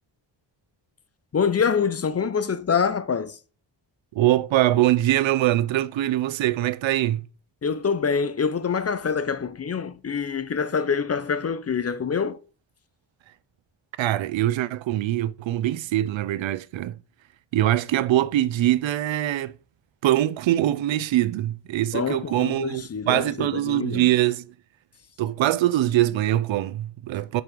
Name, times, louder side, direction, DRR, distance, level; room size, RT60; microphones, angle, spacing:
voice 1, 1.3-3.4 7.6-12.4 21.9-24.1, left 6 dB, 35° left, 0.5 m, -25 dB
voice 2, 4.1-7.2 14.0-17.0 17.5-19.5 20.0-24.4 25.2-27.4, right 14 dB, 85° right, 0.5 m, -23 dB
5.5 x 4.5 x 4.8 m
wide cardioid pair, 115°, 45 cm